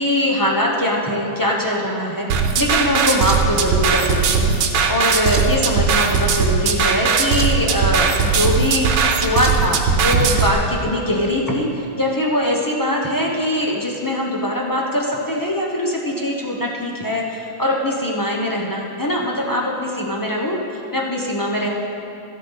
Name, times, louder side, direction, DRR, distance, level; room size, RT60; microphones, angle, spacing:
voice 1, 0.0-2.3 2.6-4.5 4.9-8.9 9.2-21.7, left 1 dB, 15° left, -3 dB, 0.7 m, -22 dB
sound 1, 2.3-10.5, right 5 dB, 85° right, 1.7 m, -18 dB
13.0 x 11.5 x 4.1 m, 2.6 s
omnidirectional pair, 2.2 m